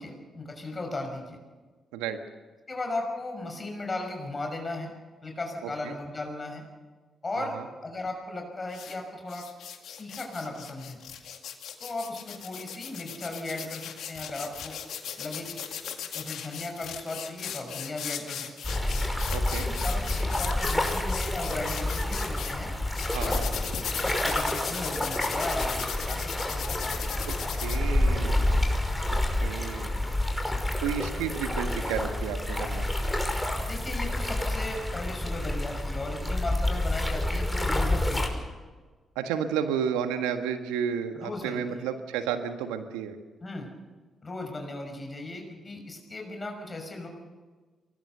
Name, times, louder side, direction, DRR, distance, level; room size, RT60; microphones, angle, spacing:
voice 1, 0.0-1.4 2.7-4.9 5.2-6.6 7.2-9.4 10.0-11.0 11.8-14.7 15.2-15.6 16.1-18.8 19.6-22.7 23.2-23.5 24.0-27.0 30.4-30.6 33.7-38.5 41.1-41.8 43.4-43.7 44.2-47.1, left 2 dB, 35° left, 2 dB, 5.9 m, -36 dB
voice 2, 5.6-5.9 7.4-7.6 19.3-19.7 23.1-23.5 27.3-27.4 27.6-28.7 29.1-30.0 30.8-32.9 39.1-43.1, right 8 dB, 80° right, 7 dB, 1.5 m, -32 dB
sound 1, 8.7-8.9 9.3-22.5 22.9-27.8, left 8 dB, 70° left, 2.0 m, -37 dB
sound 2, 18.6-38.3, left 1 dB, 10° left, 5.7 m, -28 dB
24.0 x 19.5 x 6.8 m, 1.4 s
hypercardioid pair, 40°, 0 cm